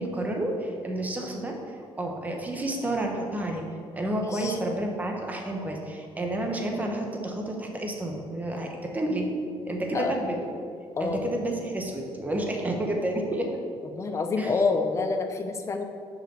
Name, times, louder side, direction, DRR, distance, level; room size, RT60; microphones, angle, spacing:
voice 1, 0.0-1.6 2.0-3.6 3.9-9.3 9.6-10.5 11.0-13.5 14.4-14.5, right 1 dB, 15° right, 1 dB, 1.1 m, -30 dB
voice 2, 4.2-4.6 9.9-10.1 11.0-11.3 13.9-15.9, left 4 dB, 30° left, 5 dB, 0.7 m, -27 dB
6.4 x 4.9 x 6.9 m, 2.2 s
cardioid pair, 140°, 10 cm